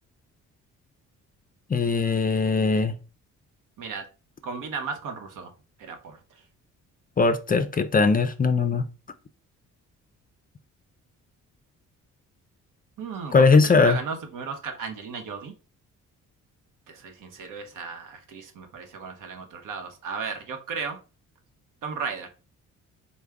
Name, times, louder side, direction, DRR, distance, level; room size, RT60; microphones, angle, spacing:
voice 1, 1.7-2.9 7.2-8.9 13.3-14.0, left 4 dB, 25° left, 0.4 m, -20 dB
voice 2, 4.4-5.5 5.8-6.2 13.0-15.5 16.9-21.0 21.8-22.3, right 5 dB, 70° right, 0.9 m, -35 dB
3.4 x 2.1 x 3.3 m
supercardioid pair, 65°, 33 cm